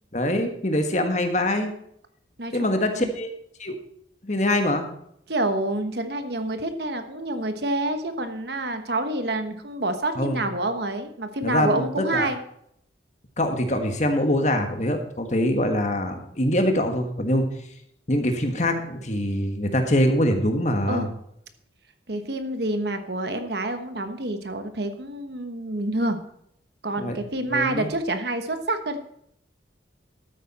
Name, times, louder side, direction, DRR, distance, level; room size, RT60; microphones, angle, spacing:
voice 1, 0.1-1.7 2.5-3.3 3.6-3.7 4.2-4.8 10.2-10.4 11.4-12.3 13.4-17.5 18.1-21.1 27.0-27.2 27.5-27.9, left 1 dB, 40° left, 5 dB, 1.5 m, -24 dB
voice 2, 2.4-3.1 5.3-12.4 20.9-21.1 22.1-26.2 26.8-29.0, right 2 dB, 60° right, 8 dB, 1.2 m, -28 dB
13.0 x 9.2 x 4.2 m, 0.72 s
head